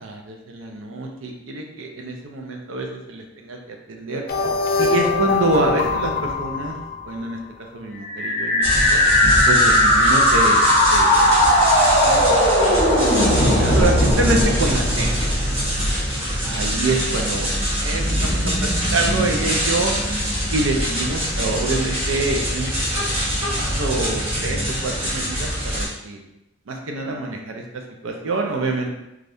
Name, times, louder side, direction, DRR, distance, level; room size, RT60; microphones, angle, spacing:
voice 1, 0.0-3.6 3.9-4.2 4.8-6.8 7.1-7.4 7.7-9.0 9.5-10.6 10.9-11.4 12.0-15.2 16.4-17.5 17.8-19.9 20.5-22.7 23.6-26.2 26.7-27.6 28.0-28.9, right 2 dB, 85° right, 2 dB, 0.5 m, -26 dB
sound 1, 4.3-7.3, left 4 dB, 50° left, 0.4 m, -23 dB
sound 2, 8.0-16.0, left 1 dB, 20° left, 1.0 m, -17 dB
sound 3, 8.6-25.9, equal, 30° right, 1.0 m, -24 dB
3.3 x 2.4 x 2.6 m, 0.90 s
head